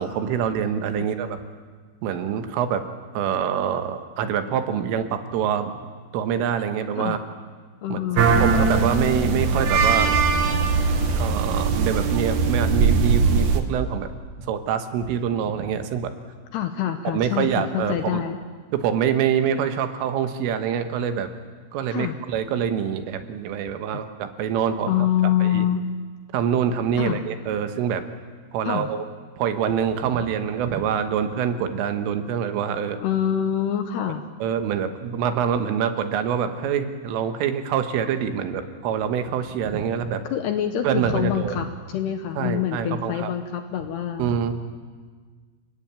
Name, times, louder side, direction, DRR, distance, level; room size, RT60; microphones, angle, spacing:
voice 1, 0.0-1.4 2.0-2.9 3.2-5.7 6.1-7.2 7.9-10.2 11.1-14.1 14.4-16.1 17.1-18.2 18.7-21.3 21.7-25.7 26.3-28.0 28.5-29.1 29.4-33.0 34.4-40.2 40.8-41.6 42.4-43.3 44.2-44.5, right 8 dB, 80° right, 8 dB, 4.0 m, -25 dB
voice 2, 7.8-8.5 16.5-18.4 21.9-22.1 24.9-25.9 27.0-27.2 28.7-28.9 33.0-34.2 40.3-44.3, left 10 dB, 75° left, 7 dB, 2.6 m, -25 dB
sound 1, 8.2-13.6, right 4 dB, 65° right, 1.9 m, -20 dB
29.5 x 20.0 x 8.9 m, 1.5 s
omnidirectional pair, 5.9 m